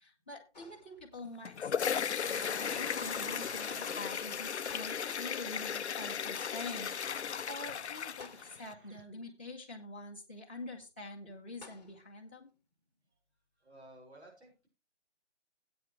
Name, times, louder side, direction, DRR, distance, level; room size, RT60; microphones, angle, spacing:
voice 1, 0.0-12.5, left 2 dB, 10° left, -6 dB, 0.8 m, -46 dB
sound 1, 0.5-1.4 4.7-5.5 8.2-8.9 11.6-12.3, left 4 dB, 35° left, 1.1 m, -56 dB
sound 2, 1.2-8.7, left 7 dB, 70° left, 0.5 m, -36 dB
Car passing by / Traffic noise roadway noise, 2.2-9.0, right 3 dB, 45° right, 1.3 m, -52 dB
voice 2, 13.6-14.7, right 1 dB, 65° right, 0 dB, 5.9 m, -55 dB
14.5 x 8.8 x 3.2 m, 0.28 s
figure-of-eight pair, 170°, 36 cm